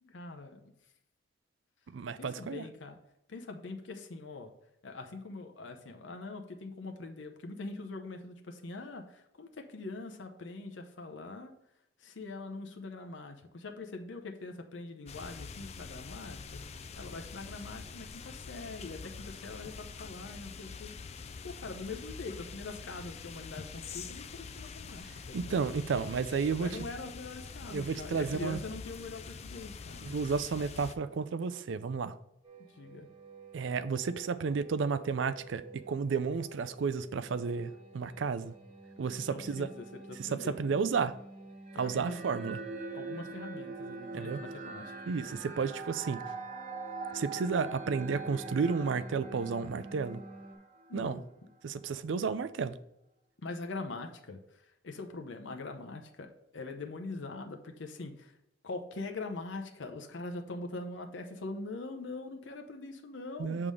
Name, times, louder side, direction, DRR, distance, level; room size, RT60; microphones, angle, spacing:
voice 1, 0.0-0.6 2.1-3.0 3.3-4.5 4.8-11.5 12.0-16.4 17.0-20.9 21.4-25.7 26.1-26.2 26.6-30.2 32.8-33.1 39.3-41.0 41.7-42.2 42.9-44.9 50.9-51.2 53.4-54.4 54.8-56.3 56.5-58.3 58.6-63.6, left 3 dB, 75° left, 0.7 m, -43 dB
voice 2, 1.9-2.7 25.3-26.8 27.7-28.6 30.0-32.2 33.5-38.5 39.0-39.7 40.2-41.1 41.8-42.6 44.1-44.4 45.1-46.2 47.1-50.2 50.9-51.2 51.6-52.8 63.4-63.7, right 5 dB, 75° right, 0.4 m, -32 dB
sound 1, 15.1-30.9, left 5 dB, 35° left, 0.4 m, -45 dB
sound 2, 32.4-50.6, right 2 dB, 25° right, 1.3 m, -51 dB
sound 3, 41.7-51.2, right 3 dB, 40° right, 1.1 m, -43 dB
6.8 x 3.6 x 6.3 m
head